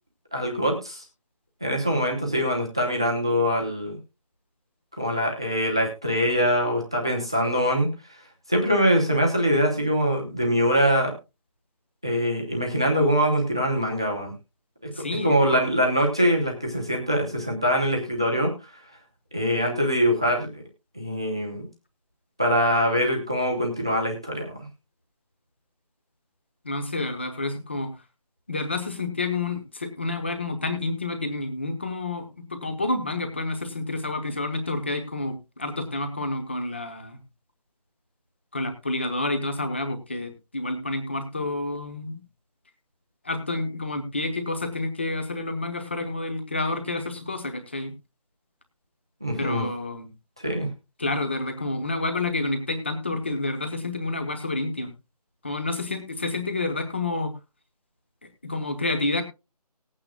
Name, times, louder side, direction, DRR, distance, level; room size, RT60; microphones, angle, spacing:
voice 1, 0.3-1.0 1.6-4.0 5.0-7.9 8.5-11.1 12.0-14.3 15.2-18.5 19.3-20.6 21.0-21.7 22.4-24.6 49.2-49.6 50.4-50.7, equal, 5° right, 1 dB, 0.7 m, -23 dB
voice 2, 14.9-15.7 26.6-27.9 28.5-37.2 38.5-42.2 43.2-47.9 49.3-50.1 51.0-54.9 55.4-57.3 58.4-59.2, left 2 dB, 15° left, 8 dB, 0.9 m, -29 dB
19.0 x 8.7 x 2.3 m, 0.26 s
figure-of-eight pair, 180°, 21 cm